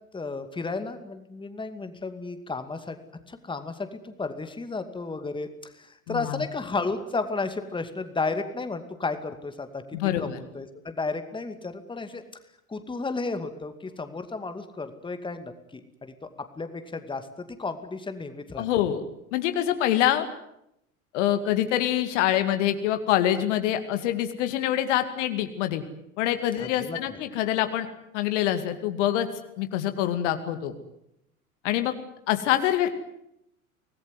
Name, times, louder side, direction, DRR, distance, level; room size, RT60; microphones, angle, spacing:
voice 1, 0.1-3.0 3.3-9.8 10.2-12.2 12.7-16.1 16.6-18.7 26.6-27.2, left 3 dB, 10° left, 9 dB, 2.4 m, -33 dB
voice 2, 6.1-6.4 9.9-10.4 18.6-19.0 19.3-20.3 21.1-25.8 26.2-27.9 28.1-29.3 29.6-30.7 31.6-31.9 32.3-32.9, left 12 dB, 55° left, 8 dB, 2.3 m, -25 dB
25.5 x 19.0 x 9.6 m, 0.79 s
figure-of-eight pair, 75°, 43 cm